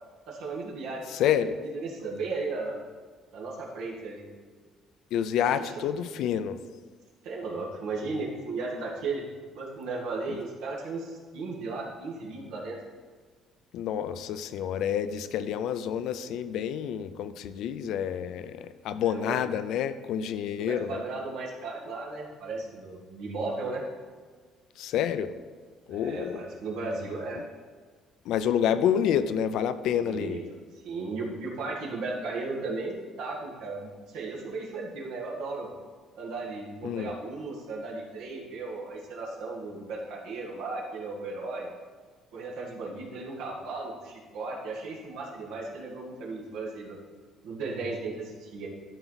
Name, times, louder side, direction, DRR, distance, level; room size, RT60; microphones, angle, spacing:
voice 1, 0.3-1.0 1.7-2.7 3.3-4.2 5.5-5.8 7.2-9.3 9.5-12.8 19.0-19.5 20.6-23.8 25.9-27.4 30.0-30.4 30.8-35.7 36.1-41.7 42.3-47.0 47.4-48.7, right 3 dB, 85° right, -2 dB, 1.9 m, -35 dB
voice 2, 1.1-1.6 5.1-6.6 10.3-10.4 13.7-21.0 24.8-25.3 25.9-26.5 28.3-30.4 36.8-37.1, left 9 dB, 70° left, 12 dB, 0.4 m, -28 dB
12.0 x 4.5 x 4.0 m, 1.5 s
cardioid pair, 145°, 0 cm